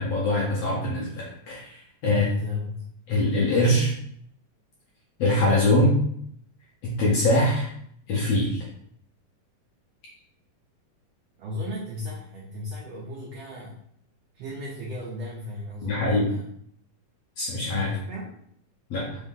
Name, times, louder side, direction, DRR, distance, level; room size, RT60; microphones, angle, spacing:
voice 1, 0.0-2.3 3.1-3.9 5.2-6.0 6.8-7.7 8.1-8.6 15.8-16.3 17.4-17.9 18.9-19.1, left 1 dB, 65° left, -5 dB, 1.6 m, -23 dB
voice 2, 2.0-2.9 11.4-13.8 14.3-16.4 17.8-18.3, left 3 dB, 80° right, -3 dB, 1.4 m, -34 dB
5.2 x 2.8 x 3.6 m, 0.67 s
omnidirectional pair, 3.9 m